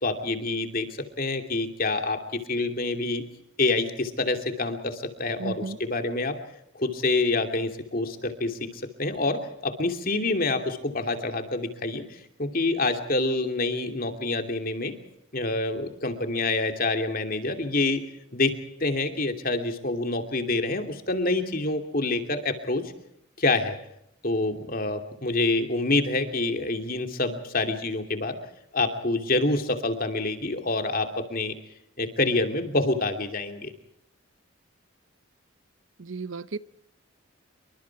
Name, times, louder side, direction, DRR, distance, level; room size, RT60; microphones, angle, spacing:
voice 1, 0.0-0.9 1.2-3.2 3.6-6.4 6.7-12.0 12.4-14.9 15.3-18.0 18.3-22.8 23.4-23.8 24.2-28.4 28.7-31.5 32.0-33.7, left 2 dB, 40° left, 2.8 m, -27 dB
voice 2, 5.4-5.8 36.0-36.6, right 3 dB, 65° right, 0.8 m, -34 dB
28.0 x 24.0 x 4.7 m
head